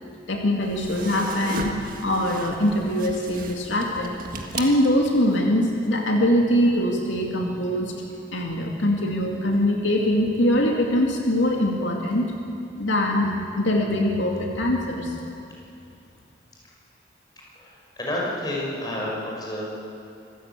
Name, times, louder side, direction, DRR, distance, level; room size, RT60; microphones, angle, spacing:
voice 1, 0.3-1.7 2.0-4.1 4.6-7.9 8.3-12.3 12.8-15.1, left 1 dB, 85° left, 0 dB, 2.4 m, -22 dB
sound 1, 0.6-5.4, right 3 dB, 45° right, 1.7 m, -36 dB
voice 2, 18.0-19.6, left 1 dB, 20° left, -4 dB, 5.7 m, -29 dB
25.5 x 14.5 x 8.3 m, 2.5 s
head